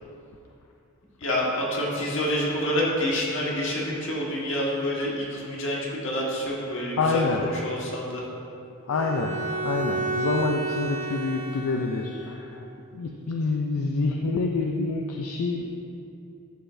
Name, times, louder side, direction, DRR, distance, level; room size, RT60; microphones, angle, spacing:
voice 1, 1.2-8.3, equal, 60° left, -4 dB, 1.6 m, -28 dB
voice 2, 7.0-7.5 8.9-12.7 12.9-15.7, left 3 dB, 85° left, 2 dB, 0.5 m, -27 dB
Bowed string instrument, 8.9-12.4, right 3 dB, 35° right, 1.8 m, -31 dB
11.0 x 6.9 x 2.6 m, 2.7 s
head